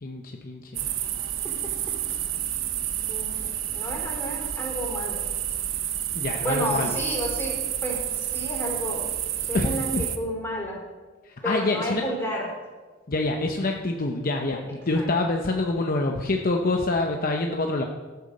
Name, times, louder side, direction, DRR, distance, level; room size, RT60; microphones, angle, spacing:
voice 1, 0.0-0.9 6.1-6.9 9.5-10.0 11.2-12.0 13.1-17.8, left 2 dB, 45° left, 2 dB, 0.8 m, -26 dB
sound 1, 0.7-10.2, right 11 dB, 75° right, 0.9 m, -30 dB
voice 2, 3.1-5.2 6.4-9.0 9.5-10.8 11.4-12.5 15.0-15.1, equal, 10° left, -3 dB, 3.9 m, -31 dB
13.5 x 8.4 x 6.6 m, 1.4 s
head